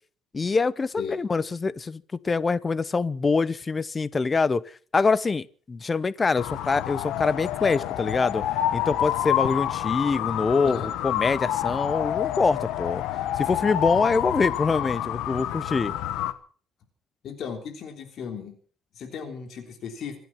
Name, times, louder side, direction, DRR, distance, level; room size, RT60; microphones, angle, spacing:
voice 1, 0.3-4.6 4.9-8.4 8.7-13.0 13.4-15.9, left 4 dB, 25° left, 0.7 m, -25 dB
sound 1, 6.3-16.3, left 12 dB, 85° left, 1.5 m, -28 dB
voice 2, 17.2-18.5 18.9-20.2, left 6 dB, 55° left, 3.4 m, -36 dB
26.0 x 9.3 x 5.8 m
cardioid pair, 140°, 0 cm